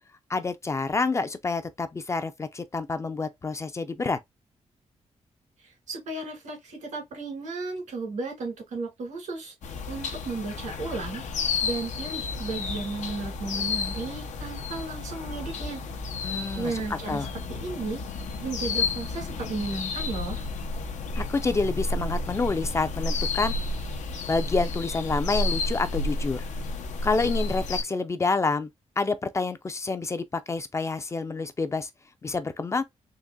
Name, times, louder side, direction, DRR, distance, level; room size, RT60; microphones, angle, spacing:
voice 1, 0.3-4.2 16.2-16.7 17.1-17.3 21.2-23.6 24.3-26.4 27.0-28.7 29.0-31.9 32.2-32.8, left 3 dB, 25° left, 0.4 m, -28 dB
voice 2, 5.6-9.5 9.9-11.2 11.6-15.8 16.6-18.0 18.4-20.4, right 3 dB, 90° right, 2.2 m, -34 dB
sound 1, 9.6-27.8, left 3 dB, 85° left, 0.7 m, -31 dB
3.9 x 2.9 x 2.2 m
wide cardioid pair, 145°, 12 cm